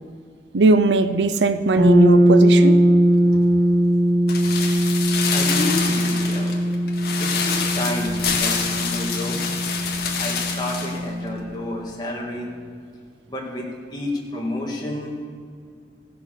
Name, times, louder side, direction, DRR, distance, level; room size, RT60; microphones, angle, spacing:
voice 1, 0.5-2.8, right 3 dB, 80° right, 11 dB, 0.6 m, -19 dB
sound 1, 1.8-11.6, equal, 60° right, 2.6 m, -19 dB
sound 2, 4.3-11.0 11.2-11.3, left 6 dB, 60° left, 1.7 m, -26 dB
voice 2, 5.3-6.7 7.2-9.4 10.2-12.5 13.3-15.3, left 1 dB, 25° left, -2 dB, 2.1 m, -30 dB
16.0 x 6.9 x 6.6 m, 2.3 s
head